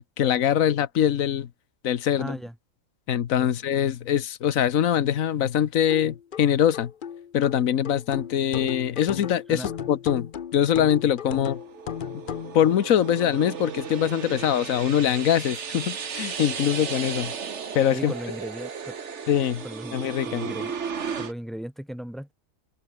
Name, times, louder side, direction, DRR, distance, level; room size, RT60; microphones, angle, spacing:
voice 1, 0.2-1.5 1.8-2.4 3.1-6.9 7.3-11.6 12.5-17.3 17.7-18.1 19.3-19.6 19.9-20.5, left 10 dB, 85° left, 1.4 m, -23 dB
voice 2, 2.2-2.5 3.4-3.6 9.5-9.7 17.9-18.9 19.6-20.0 20.2-20.7 21.2-22.3, equal, ahead, 2.9 m, -36 dB
sound 1, 5.9-12.6, left 8 dB, 45° left, 0.8 m, -36 dB
sound 2, 11.2-21.3, right 6 dB, 60° right, 1.6 m, -35 dB
sound 3, 11.7-20.8, right 3 dB, 40° right, 2.6 m, -48 dB
omnidirectional pair, 1.4 m